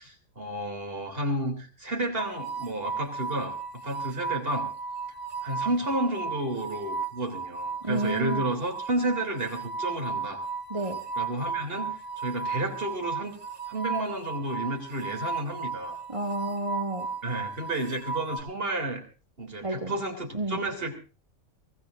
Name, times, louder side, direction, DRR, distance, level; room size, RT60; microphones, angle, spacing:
voice 1, 0.0-3.6 3.8-4.7 5.4-10.4 11.2-13.4 13.7-16.0 17.2-19.0 19.4-20.9, right 1 dB, 50° right, 5 dB, 3.6 m, -31 dB
sound 1, 2.2-18.4, right 4 dB, 70° right, 5.7 m, -35 dB
voice 2, 7.8-8.4 10.7-11.0 16.1-17.1 19.6-20.0 20.3-20.6, right 2 dB, 25° right, 3 dB, 2.2 m, -30 dB
24.0 x 17.5 x 2.6 m, 0.36 s
omnidirectional pair, 1.3 m